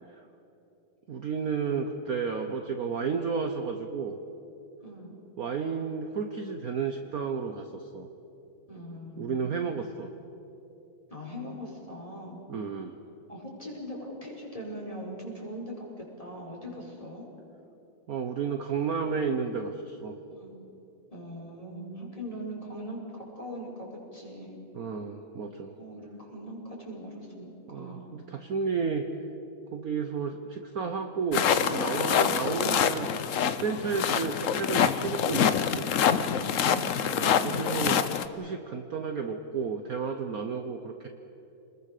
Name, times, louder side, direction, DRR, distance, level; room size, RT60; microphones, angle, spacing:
voice 1, 1.1-4.2 5.4-8.1 9.2-10.1 12.5-12.9 18.1-20.1 24.7-25.7 27.7-29.0 29.7-33.1 33.4-35.9 37.1-38.0 38.3-41.1, right 5 dB, 55° right, 5 dB, 1.3 m, -32 dB
voice 2, 4.8-5.1 8.7-9.6 11.1-12.4 13.3-17.3 20.3-20.5 21.1-24.6 25.8-28.0 32.6-32.8 36.3-37.0, equal, 15° left, -3 dB, 5.0 m, -41 dB
sound 1, 31.3-38.3, left 8 dB, 60° left, 0.9 m, -26 dB
28.5 x 21.0 x 6.7 m, 2.9 s
omnidirectional pair, 2.1 m